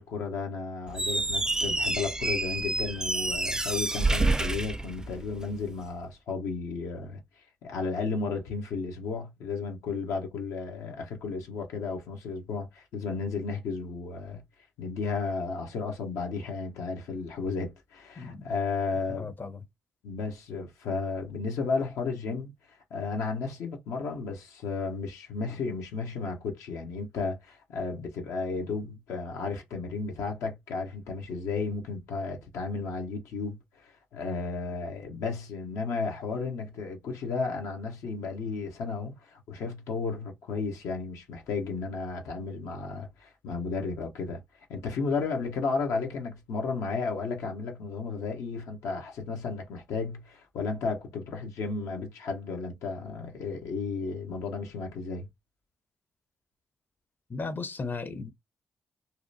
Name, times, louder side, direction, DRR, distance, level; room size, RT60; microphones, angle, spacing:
voice 1, 0.0-7.2 7.6-14.4 14.8-19.3 20.0-22.5 22.9-44.4 44.7-55.3, left 4 dB, 75° left, 0.7 m, -33 dB
Squeak, 0.9-5.5, right 2 dB, 10° right, 0.4 m, -28 dB
voice 2, 19.2-19.6 57.3-58.3, left 4 dB, 40° left, 0.6 m, -35 dB
2.8 x 2.1 x 2.6 m
hypercardioid pair, 45°, 5 cm